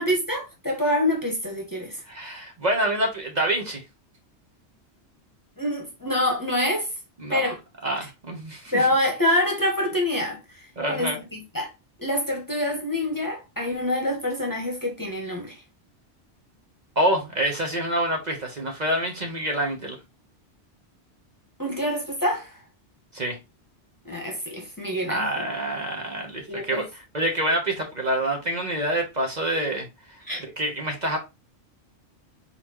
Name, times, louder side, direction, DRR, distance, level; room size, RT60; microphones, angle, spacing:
voice 1, 0.0-2.0 5.6-6.9 7.3-7.6 8.7-11.7 12.0-15.6 21.6-22.6 24.0-25.4 26.5-26.8 30.2-30.4, left 1 dB, 20° left, 1.1 m, -26 dB
voice 2, 2.1-3.8 7.2-7.5 7.8-8.9 10.8-11.2 17.0-20.0 23.1-23.4 25.1-29.9 30.6-31.2, right 1 dB, 40° right, 1.0 m, -26 dB
4.2 x 4.2 x 2.9 m
omnidirectional pair, 1.1 m